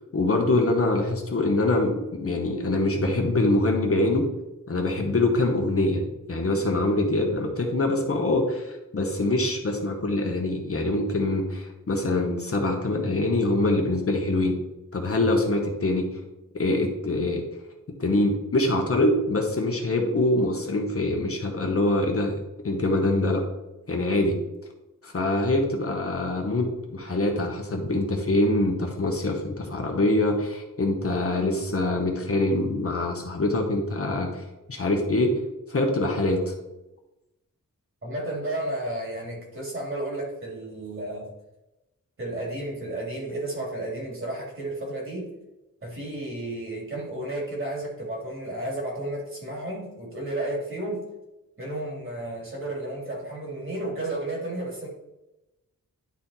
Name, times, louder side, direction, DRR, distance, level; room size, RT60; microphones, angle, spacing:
voice 1, 0.1-4.3 4.7-14.6 14.9-16.1 16.5-17.4 18.0-22.4 22.6-23.4 23.9-24.4 25.0-34.4 34.7-35.3 35.7-36.5, left 2 dB, 45° left, 2 dB, 1.1 m, -24 dB
voice 2, 38.0-41.3 42.2-45.3 45.8-51.0 51.6-54.9, right 1 dB, 40° right, -2 dB, 2.7 m, -32 dB
10.5 x 4.2 x 4.2 m, 0.98 s
wide cardioid pair, 140°, 32 cm